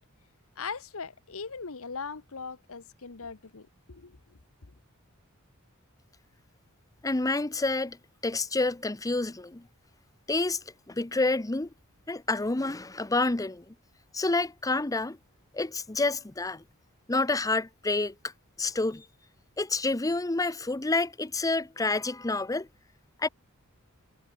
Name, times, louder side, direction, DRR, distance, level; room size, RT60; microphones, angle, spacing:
voice 1, 0.6-4.2, left 5 dB, 70° left, 1.2 m, -39 dB
voice 2, 7.0-8.0 8.2-9.7 10.3-11.7 12.1-13.7 14.1-15.2 15.5-16.6 17.1-18.1 18.6-19.1 19.6-22.7 23.2-23.3, left 2 dB, 15° left, 0.7 m, -28 dB
head